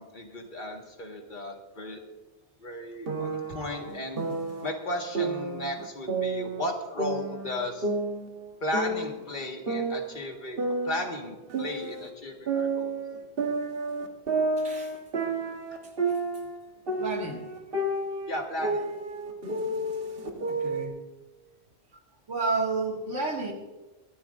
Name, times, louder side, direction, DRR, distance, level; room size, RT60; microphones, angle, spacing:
voice 1, 0.0-2.0 2.6-4.2 4.6-7.9 8.6-13.0 18.3-18.9, left 1 dB, 45° left, 2 dB, 1.7 m, -35 dB
sound 1, 3.1-4.7 5.1-6.7 7.0-9.2 9.6-12.1 12.5-16.6 16.9-20.8, right 2 dB, 55° right, 1.4 m, -31 dB
voice 2, 14.6-15.0 15.8-16.2 17.0-17.5 20.5-20.9 22.3-23.5, right 3 dB, 90° right, 0 dB, 2.3 m, -31 dB
23.0 x 12.0 x 2.5 m, 1.1 s
omnidirectional pair, 1.2 m